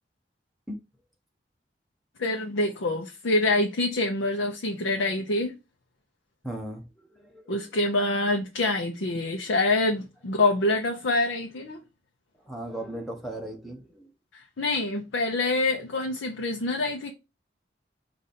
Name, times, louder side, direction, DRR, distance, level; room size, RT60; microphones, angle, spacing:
voice 1, 2.2-5.5 7.5-11.8 14.6-17.1, left 2 dB, 90° left, 0.7 m, -26 dB
voice 2, 6.4-7.6 12.5-14.1, right 1 dB, ahead, 0.7 m, -37 dB
5.1 x 2.5 x 4.2 m
head